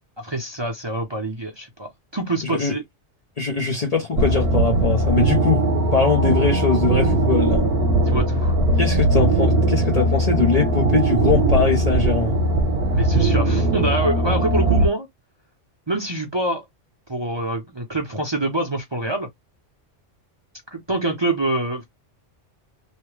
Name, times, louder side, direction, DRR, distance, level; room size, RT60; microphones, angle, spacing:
voice 1, 0.2-2.8 8.0-8.6 12.9-15.1 15.9-16.6 17.1-19.3 20.7-21.8, right 2 dB, 25° right, 0.7 m, -25 dB
voice 2, 2.4-2.7 3.4-5.6 5.9-7.7 8.8-12.4, left 5 dB, 40° left, 0.7 m, -22 dB
sound 1, 4.2-14.9, right 2 dB, 60° right, 1.2 m, -19 dB
3.3 x 2.1 x 3.1 m
omnidirectional pair, 1.2 m